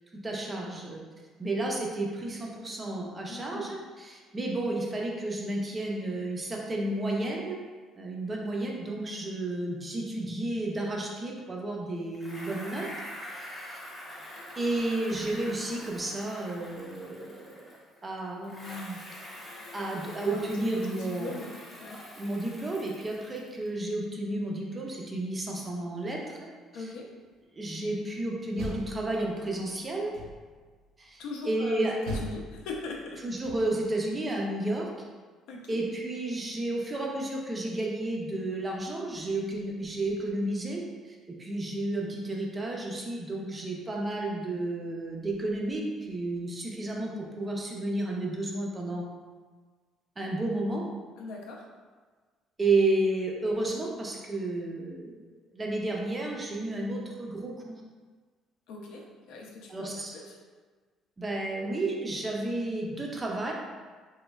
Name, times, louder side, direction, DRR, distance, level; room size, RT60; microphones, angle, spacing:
voice 1, 0.1-1.0 1.4-7.6 7.9-12.9 13.2-13.8 14.6-17.7 18.0-19.0 19.7-21.3 22.0-26.5 26.7-26.9 27.5-30.1 31.0-31.9 33.2-34.9 35.7-49.0 50.2-50.8 52.6-55.2 55.5-57.8 59.7-60.2 61.2-63.5, right 2 dB, 15° right, -1 dB, 0.4 m, -32 dB
voice 2, 3.3-3.7 20.3-21.5 21.8-22.0 26.7-27.1 31.2-33.2 35.5-35.8 51.2-51.6 58.7-59.0 59.3-60.4, left 3 dB, 75° left, -1 dB, 0.5 m, -40 dB
Bicycle, 12.1-18.0 18.4-23.7, left 1 dB, 15° left, 0.7 m, -45 dB
Door, 28.3-29.6 30.1-30.7 32.0-33.9, equal, 60° right, 0.6 m, -40 dB
3.2 x 3.0 x 2.2 m, 1.4 s
cardioid pair, 175°, 0 cm